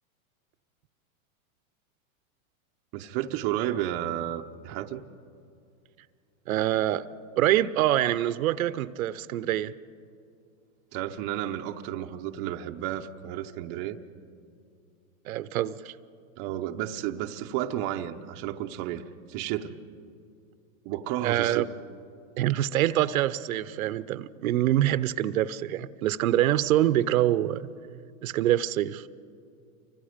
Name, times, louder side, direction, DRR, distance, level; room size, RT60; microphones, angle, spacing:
voice 1, 2.9-5.0 10.9-14.0 16.4-19.0 19.3-19.7 20.8-21.6, right 12 dB, 30° right, 0.7 m, -32 dB
voice 2, 6.5-7.1 7.4-9.7 15.3-15.9 21.2-21.6 22.4-27.7 28.2-29.1, right 13 dB, 75° right, 0.8 m, -25 dB
28.5 x 24.5 x 5.1 m
supercardioid pair, 155°, 42 cm